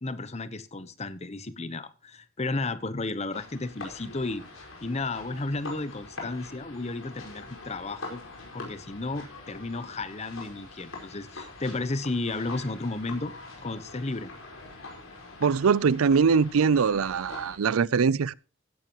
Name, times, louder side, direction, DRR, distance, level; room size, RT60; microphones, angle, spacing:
voice 1, 0.0-4.4 4.8-8.2 8.5-13.3 13.6-14.3, left 2 dB, 30° left, 0.9 m, -33 dB
sound 1, 3.3-17.6, left 3 dB, 75° left, 5.0 m, -44 dB
voice 2, 15.4-18.3, right 5 dB, 90° right, 0.5 m, -22 dB
15.5 x 10.5 x 3.0 m
head